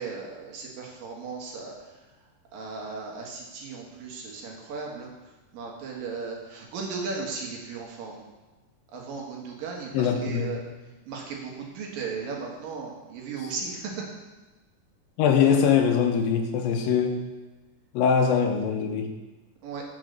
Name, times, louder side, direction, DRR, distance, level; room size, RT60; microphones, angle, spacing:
voice 1, 0.0-1.7 2.5-5.1 5.5-8.2 8.9-10.6 11.1-14.0 19.6-19.8, right 4 dB, 75° right, -1 dB, 3.3 m, -36 dB
voice 2, 9.9-10.5 15.2-17.2 17.9-19.1, left 7 dB, 85° left, 4 dB, 2.7 m, -22 dB
9.4 x 5.9 x 6.5 m, 1.2 s
omnidirectional pair, 4.0 m